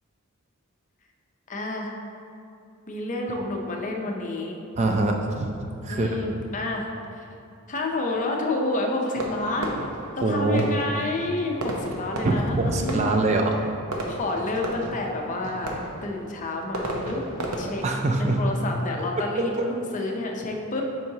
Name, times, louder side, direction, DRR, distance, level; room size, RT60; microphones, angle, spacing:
voice 1, 1.5-2.0 2.9-4.6 5.9-7.2 7.7-9.8 10.2-13.3 14.1-17.2 17.6-17.8 18.2-20.8, left 2 dB, 35° left, 1 dB, 0.6 m, -29 dB
voice 2, 4.8-5.5 5.8-6.1 10.2-10.7 12.2-13.6 17.8-18.4, right 2 dB, 30° right, 2 dB, 0.3 m, -23 dB
Fireworks, 9.1-19.7, right 1 dB, 80° right, 0.8 m, -35 dB
7.3 x 4.7 x 2.7 m, 2.6 s
head